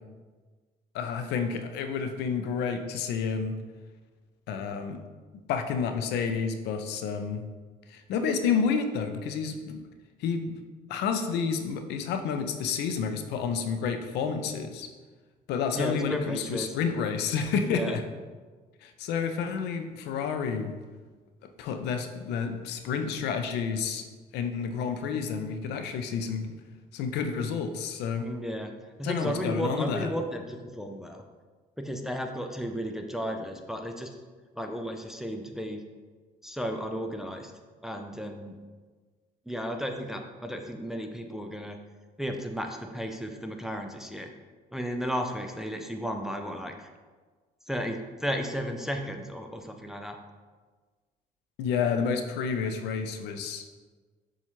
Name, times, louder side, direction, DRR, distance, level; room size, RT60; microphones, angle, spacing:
voice 1, 0.9-3.6 4.5-5.0 5.5-7.4 7.9-9.8 10.2-10.6 10.9-14.9 15.5-18.0 18.8-20.7 21.6-24.0 24.3-26.5 26.9-28.3 29.0-30.1 51.6-53.6, left 6 dB, 80° left, 7 dB, 0.5 m, -30 dB
voice 2, 15.7-16.7 17.6-18.0 28.2-31.2 31.8-34.2 34.6-35.8 36.4-37.5 37.8-38.6 39.5-41.8 42.2-44.3 44.7-46.9 47.7-50.2, equal, ahead, 4 dB, 0.3 m, -34 dB
7.1 x 2.4 x 3.0 m, 1.4 s
cardioid pair, 110°, 17 cm